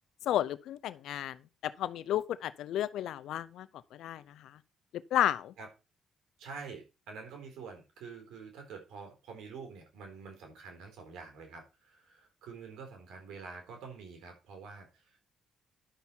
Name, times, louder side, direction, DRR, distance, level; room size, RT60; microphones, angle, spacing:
voice 1, 0.3-1.4 1.6-3.7 4.0-4.2 5.1-5.5, left 12 dB, 80° left, 0.6 m, -32 dB
voice 2, 6.4-15.3, right 5 dB, 85° right, 4.1 m, -47 dB
11.5 x 6.8 x 4.5 m
cardioid pair, 90°, 0 cm